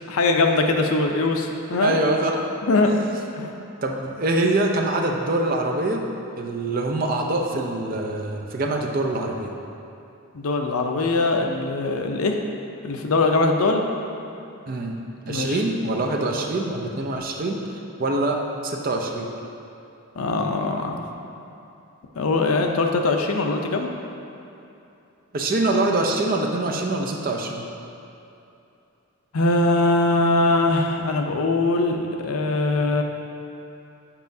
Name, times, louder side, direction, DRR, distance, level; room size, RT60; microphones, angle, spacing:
voice 1, 0.1-2.0 2.6-3.0 3.4-3.5 10.3-12.4 12.8-13.8 15.3-15.6 20.2-21.1 22.2-23.9 29.3-33.0, left 2 dB, 80° left, 3 dB, 0.5 m, -21 dB
voice 2, 1.8-2.4 2.8-3.1 3.8-6.0 6.4-9.5 14.7-15.0 15.3-17.6 18.0-19.3 25.3-27.7, right 2 dB, 40° right, 1 dB, 0.5 m, -24 dB
7.2 x 5.5 x 2.7 m, 2.8 s
head